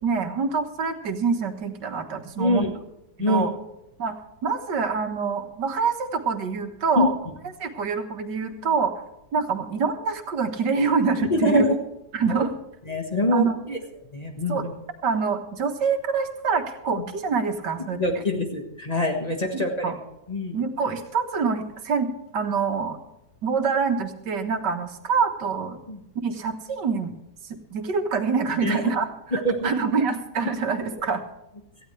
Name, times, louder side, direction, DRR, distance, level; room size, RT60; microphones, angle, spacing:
voice 1, 0.0-2.6 3.2-3.5 4.0-7.2 7.6-8.9 9.3-11.7 12.1-12.5 13.3-13.6 14.5-14.6 15.0-18.0 19.8-20.0 20.5-23.0 23.4-25.8 26.2-27.1 27.4-31.2, right 5 dB, 85° right, 6 dB, 2.0 m, -26 dB
voice 2, 2.4-2.7 3.2-3.5 7.0-7.3 11.3-11.8 12.9-13.8 14.1-14.7 16.9-17.0 17.9-20.0 20.3-20.6 25.9-26.0 28.6-28.9 29.3-29.7, left 1 dB, 25° left, 3 dB, 1.5 m, -24 dB
18.0 x 14.5 x 3.3 m, 0.89 s
omnidirectional pair, 1.8 m